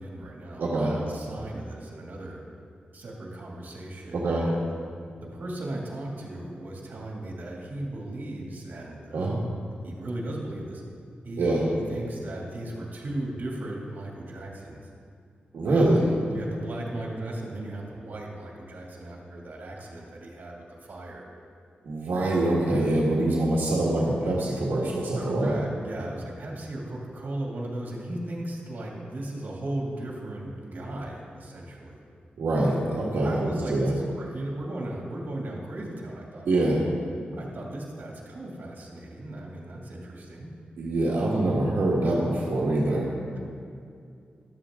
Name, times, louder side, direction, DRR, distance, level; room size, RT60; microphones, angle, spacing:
voice 1, 0.0-2.4 2.9-4.7 5.2-9.4 9.8-10.8 11.2-14.8 15.6-16.0 16.3-21.3 25.1-32.0 33.2-36.7 37.3-40.5, right 1 dB, 60° right, -2 dB, 2.5 m, -36 dB
voice 2, 0.6-1.0 4.1-4.5 9.1-9.4 11.4-11.6 15.5-16.1 21.8-25.5 32.4-33.9 36.5-36.8 40.8-43.1, right 2 dB, 85° right, -5 dB, 1.7 m, -24 dB
14.0 x 12.0 x 3.8 m, 2.4 s
wide cardioid pair, 125°, 3 cm